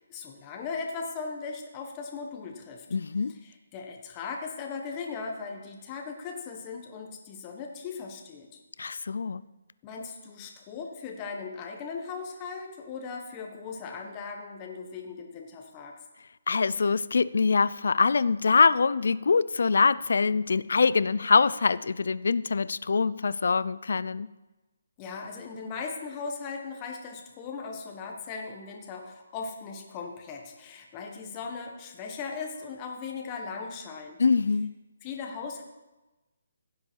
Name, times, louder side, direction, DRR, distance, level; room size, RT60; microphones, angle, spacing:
voice 1, 0.0-2.9 3.4-8.6 9.8-15.9 25.0-34.2 35.0-35.6, left 5 dB, 20° left, 1 dB, 1.3 m, -38 dB
voice 2, 2.9-3.4 8.8-9.4 16.5-24.3 34.2-34.7, left 4 dB, 70° left, 18 dB, 0.4 m, -24 dB
15.5 x 7.7 x 4.6 m, 1.1 s
hypercardioid pair, 165°, 0 cm